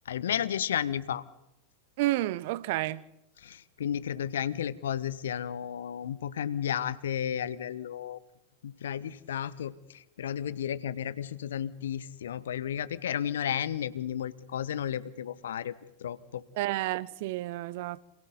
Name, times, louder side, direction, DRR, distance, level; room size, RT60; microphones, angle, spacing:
voice 1, 0.1-1.2 3.4-8.2 8.6-9.7 10.2-15.7 16.0-16.4, left 9 dB, 60° left, 1.1 m, -33 dB
voice 2, 2.0-3.0 16.5-18.0, right 17 dB, 50° right, 0.9 m, -30 dB
29.5 x 27.5 x 4.0 m
figure-of-eight pair, 90°, 0 cm